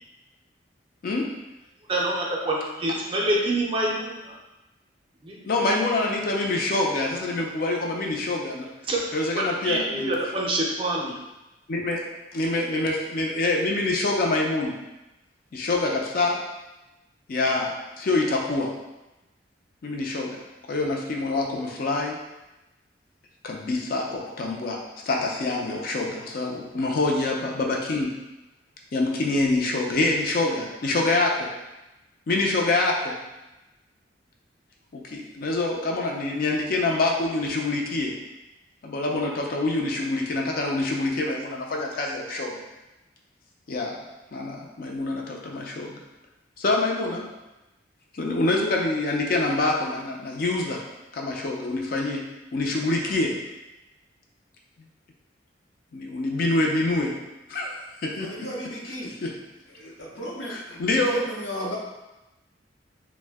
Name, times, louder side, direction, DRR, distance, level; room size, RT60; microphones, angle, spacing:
voice 1, 1.9-4.3 5.2-5.4 8.9-9.0 9.3-11.2, right 1 dB, 30° right, -3 dB, 0.4 m, -26 dB
voice 2, 5.4-8.7 9.1-10.1 11.7-12.0 12.3-14.8 15.5-16.4 17.3-17.7 18.0-18.7 19.8-20.4 20.7-22.2 23.4-24.8 25.1-28.1 28.9-31.5 32.3-33.2 34.9-38.1 38.8-42.6 43.7-44.0 44.3-46.0 46.6-47.3 48.1-50.8 51.1-52.2 52.5-53.3 55.9-57.1 57.5-58.3 59.2-59.3 60.5-61.1, left 2 dB, 50° left, 0 dB, 0.4 m, -26 dB
voice 3, 58.1-59.2 59.7-61.8, equal, 75° left, -4 dB, 0.7 m, -35 dB
2.5 x 2.1 x 3.4 m, 1.0 s
head